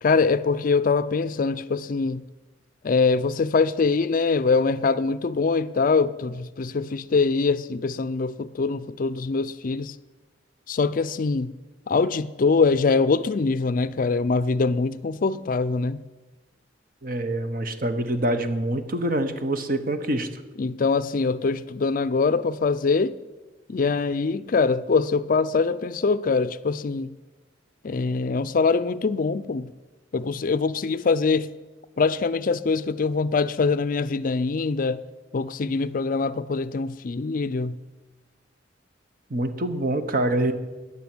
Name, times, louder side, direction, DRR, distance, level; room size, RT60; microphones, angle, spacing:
voice 1, 0.0-2.2 2.8-9.9 10.7-11.5 11.9-16.0 20.6-23.2 23.7-27.1 27.8-29.7 30.1-31.5 32.0-35.0 35.3-37.8, left 4 dB, 50° left, 0.4 m, -23 dB
voice 2, 17.0-20.3 39.3-40.5, right 1 dB, 50° right, 1.1 m, -25 dB
14.0 x 9.9 x 6.2 m
head